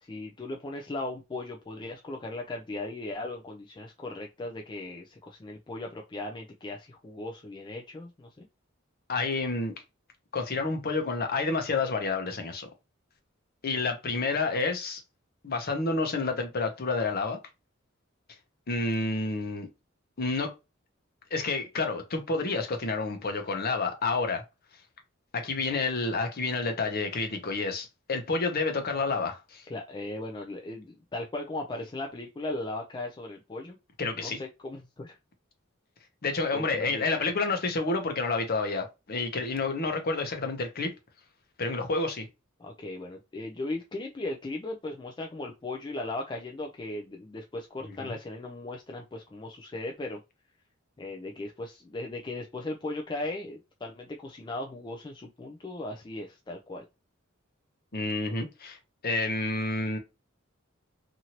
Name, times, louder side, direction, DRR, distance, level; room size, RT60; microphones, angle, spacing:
voice 1, 0.0-8.5 29.7-33.8 34.1-35.2 36.5-37.0 42.6-50.2 51.0-56.8, left 2 dB, 20° left, 0.4 m, -37 dB
voice 2, 9.1-9.7 10.3-12.7 13.6-15.0 15.4-17.4 18.7-19.7 20.2-20.5 21.3-24.4 25.3-29.7 34.0-34.4 36.2-40.9 41.6-42.3 47.8-48.1 57.9-58.8 59.0-60.0, left 3 dB, 50° left, 0.8 m, -29 dB
2.9 x 2.6 x 2.8 m
head